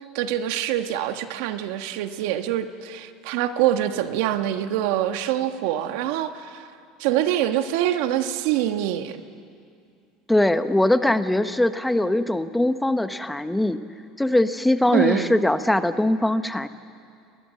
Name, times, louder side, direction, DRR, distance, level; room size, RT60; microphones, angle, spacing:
voice 1, 0.1-6.6 7.0-9.2 14.9-15.4, right 12 dB, 75° right, 8 dB, 1.3 m, -25 dB
voice 2, 10.3-13.8 14.2-16.7, left 1 dB, 5° left, 10 dB, 1.0 m, -21 dB
29.0 x 20.5 x 7.6 m, 2.4 s
supercardioid pair, 110°, 0 cm